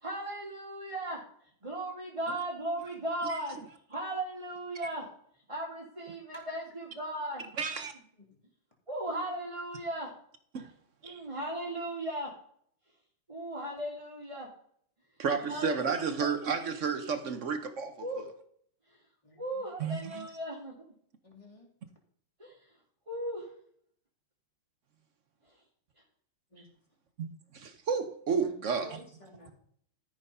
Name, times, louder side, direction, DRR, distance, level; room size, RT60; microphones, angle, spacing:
voice 1, 0.0-1.2 1.6-3.6 3.9-5.1 5.5-7.5 8.9-10.1 11.0-12.3 13.3-14.5 15.4-16.3 18.0-18.2 19.4-20.7 22.4-22.5 23.1-23.5, right 1 dB, 15° right, 2.2 m, -36 dB
voice 2, 7.6-7.9 10.5-10.7 11.0-11.2 15.2-18.0 19.8-20.3 27.5-29.0, right 5 dB, 60° right, 0.8 m, -32 dB
voice 3, 19.2-19.7 21.2-21.7 26.5-26.7 28.4-29.5, right 1 dB, 15° left, 2.6 m, -51 dB
13.5 x 5.0 x 5.4 m
omnidirectional pair, 2.4 m